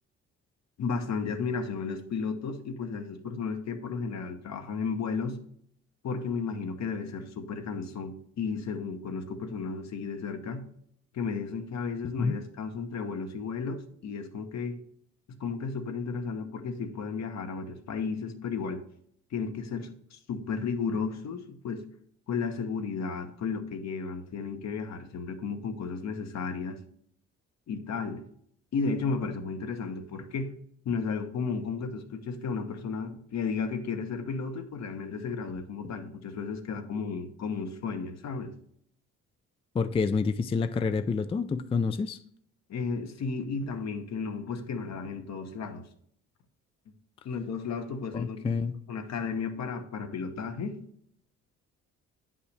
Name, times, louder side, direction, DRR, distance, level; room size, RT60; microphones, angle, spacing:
voice 1, 0.8-5.4 6.0-10.6 11.1-14.8 15.3-18.8 19.3-21.9 22.3-26.8 27.7-28.2 28.7-30.5 30.8-38.5 42.7-45.9 47.2-48.6 48.9-50.8, left 5 dB, 60° left, 1.0 m, -33 dB
voice 2, 39.7-42.2 48.1-48.7, left 5 dB, 20° left, 0.3 m, -28 dB
8.3 x 5.5 x 3.3 m
cardioid pair, 90°, 30 cm